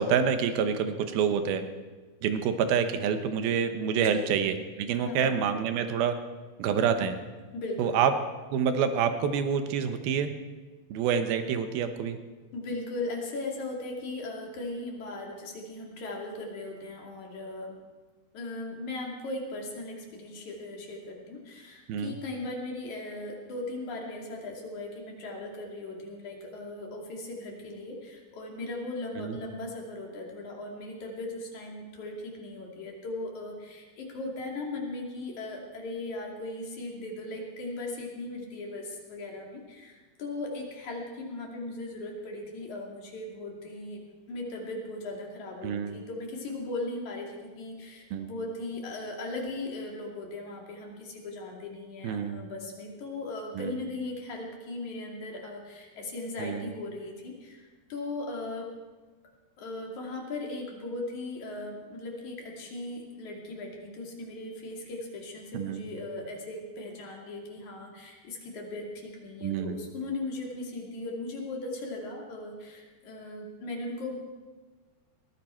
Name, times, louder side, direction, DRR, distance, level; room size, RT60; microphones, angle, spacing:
voice 1, 0.0-1.6 2.2-6.2 6.6-7.2 7.8-8.1 8.5-10.3 10.9-12.2 21.9-22.2 29.2-29.4 45.6-46.0 48.1-48.3 52.0-52.4 53.6-53.7 56.4-56.7 65.5-65.8 69.4-69.8, right 7 dB, 70° right, 8 dB, 2.8 m, -27 dB
voice 2, 3.9-4.3 5.0-5.3 7.5-8.0 12.5-17.8 18.3-44.0 44.3-57.6 57.9-58.7 59.6-74.1, left 2 dB, 50° left, -1 dB, 3.7 m, -38 dB
21.0 x 15.5 x 4.5 m, 1.3 s
omnidirectional pair, 4.7 m